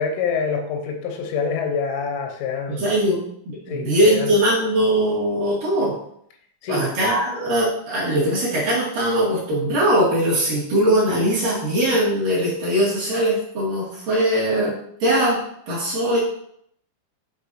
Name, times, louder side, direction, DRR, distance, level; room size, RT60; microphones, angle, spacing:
voice 1, 0.0-2.9 3.7-4.3 6.6-6.9, left 5 dB, 80° left, 3 dB, 3.3 m, -26 dB
voice 2, 2.7-6.0 6.7-15.4 15.7-16.2, right 1 dB, 55° right, -6 dB, 2.9 m, -21 dB
10.5 x 4.4 x 2.7 m, 0.71 s
omnidirectional pair, 5.5 m